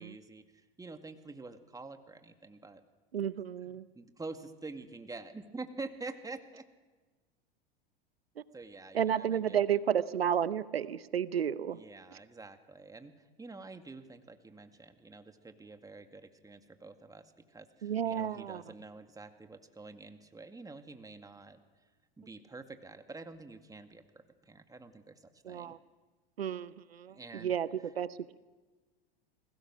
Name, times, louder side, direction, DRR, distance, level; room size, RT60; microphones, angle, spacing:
voice 1, 0.0-2.8 3.6-6.7 8.5-9.8 11.7-21.6 22.2-25.8 27.1-27.6, right 3 dB, 10° right, 7 dB, 2.1 m, -47 dB
voice 2, 3.1-3.9 8.4-8.5 8.9-11.8 17.8-18.6 25.5-25.8 26.4-27.2 27.4-28.4, right 9 dB, 90° right, 17 dB, 0.7 m, -32 dB
29.5 x 20.5 x 6.2 m, 1.3 s
hypercardioid pair, 85°, 30 cm